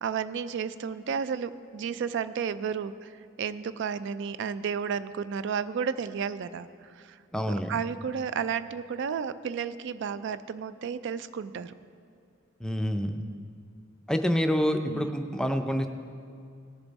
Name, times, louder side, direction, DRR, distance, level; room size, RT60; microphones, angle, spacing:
voice 1, 0.0-3.1 3.4-7.2 7.7-11.7 13.2-13.5 14.9-15.1, right 6 dB, 60° right, 14 dB, 0.4 m, -32 dB
voice 2, 7.3-7.8 12.6-13.2 14.1-15.9, equal, 5° left, 6 dB, 0.5 m, -27 dB
18.0 x 6.9 x 4.1 m, 2.4 s
head